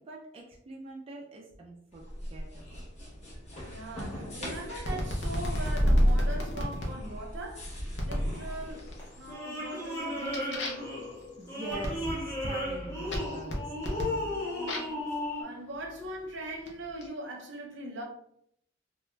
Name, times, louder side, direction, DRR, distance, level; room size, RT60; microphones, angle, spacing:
voice 1, 0.0-2.9 11.4-14.3, right 1 dB, 30° right, 0.4 m, -43 dB
sound 1, 1.9-9.3, equal, 35° left, 0.9 m, -31 dB
voice 2, 3.7-7.7 8.0-8.9 9.2-11.0 14.6-15.0 15.4-18.0, right 1 dB, 70° right, 0.7 m, -41 dB
sound 2, 4.8-6.9 8.0-8.3 8.8-9.3 9.6-15.0 15.8-17.1, left 1 dB, 65° left, 0.6 m, -37 dB
sound 3, 8.7-15.4, left 1 dB, 15° left, 0.7 m, -35 dB
2.4 x 2.2 x 3.1 m
head